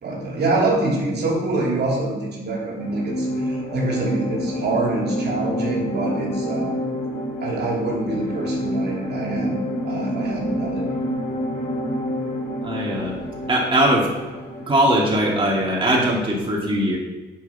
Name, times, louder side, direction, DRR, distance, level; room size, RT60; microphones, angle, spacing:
voice 1, 0.0-6.7 7.4-10.8, right 2 dB, 55° right, -2 dB, 2.7 m, -25 dB
sound 1, 2.8-16.1, equal, 45° left, 3.3 m, -28 dB
voice 2, 12.6-13.1 13.5-14.1 14.7-17.0, right 1 dB, 25° right, -3 dB, 2.2 m, -20 dB
8.0 x 6.3 x 5.6 m, 1.2 s
cardioid pair, 90°, 20 cm